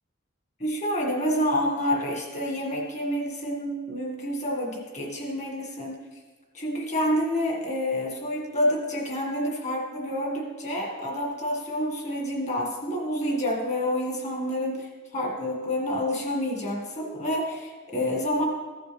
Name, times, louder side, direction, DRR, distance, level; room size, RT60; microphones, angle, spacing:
voice 1, 0.6-6.0 6.5-18.5, equal, 35° left, 0 dB, 1.8 m, -28 dB
14.5 x 7.7 x 3.4 m, 1.3 s
head